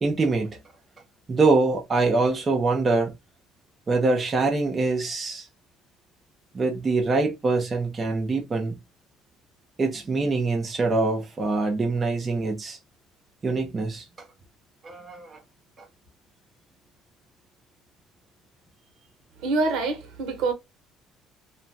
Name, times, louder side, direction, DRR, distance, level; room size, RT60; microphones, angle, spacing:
voice 1, 0.0-0.6 1.3-3.1 3.9-5.5 6.5-8.8 9.8-12.8 13.4-14.1 14.8-15.4 15.8-15.9, right 3 dB, 20° right, 0.5 m, -24 dB
voice 2, 19.4-20.5, right 3 dB, 70° right, 1.0 m, -25 dB
3.0 x 2.2 x 2.6 m
cardioid pair, 170°, 0 cm